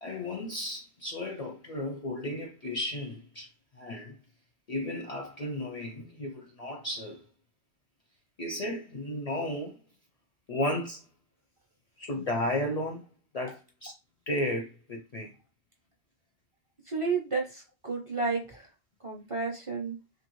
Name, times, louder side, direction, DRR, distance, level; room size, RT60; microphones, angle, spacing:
voice 1, 0.0-3.5 3.8-4.2 4.7-7.2 8.4-9.8 10.5-11.0 12.0-13.1 13.3-13.9 14.3-15.3, left 1 dB, 50° left, 0.5 m, -34 dB
voice 2, 16.9-18.7 19.0-20.0, right 4 dB, 35° right, 0.6 m, -31 dB
2.7 x 2.6 x 3.0 m
omnidirectional pair, 1.1 m